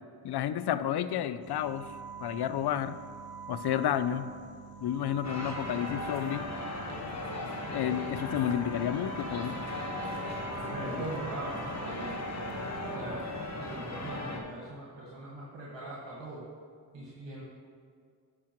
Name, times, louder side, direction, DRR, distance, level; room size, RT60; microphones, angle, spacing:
voice 1, 0.2-3.0 3.5-4.3 4.8-6.5 7.7-9.6, left 10 dB, 55° left, 13 dB, 0.5 m, -31 dB
sound 1, 1.4-13.0, right 6 dB, 50° right, 0.9 m, -45 dB
sound 2, 5.2-14.4, left 2 dB, 35° left, 1.3 m, -37 dB
voice 2, 10.7-12.2 12.9-13.3 13.6-16.4 16.9-17.4, right 2 dB, 70° right, -6 dB, 1.7 m, -41 dB
10.5 x 6.2 x 3.0 m, 2.2 s
cardioid pair, 50°, 46 cm